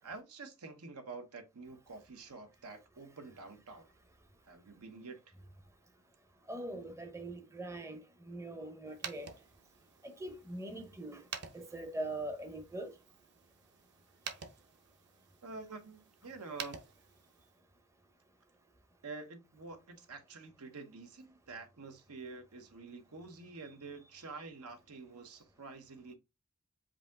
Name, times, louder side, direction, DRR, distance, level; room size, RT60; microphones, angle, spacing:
voice 1, 0.0-3.9 4.5-5.3 15.4-16.8 19.0-26.2, right 3 dB, 85° right, 1.0 m, -48 dB
voice 2, 6.5-8.0 8.3-9.3 10.2-11.2 11.5-12.9, right 1 dB, 15° right, 0.6 m, -42 dB
sound 1, 8.9-17.6, right 6 dB, 55° right, 0.8 m, -50 dB
5.1 x 2.8 x 3.5 m
head